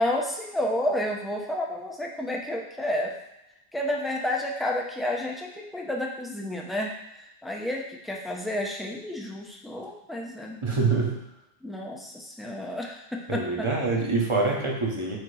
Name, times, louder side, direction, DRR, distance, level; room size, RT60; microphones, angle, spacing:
voice 1, 0.0-3.1 3.7-6.9 7.4-10.9 11.6-13.7, left 1 dB, ahead, -1 dB, 0.6 m, -30 dB
voice 2, 10.6-11.2 13.3-15.2, right 3 dB, 30° right, -1 dB, 1.0 m, -25 dB
6.4 x 3.0 x 4.9 m, 0.86 s
omnidirectional pair, 1.0 m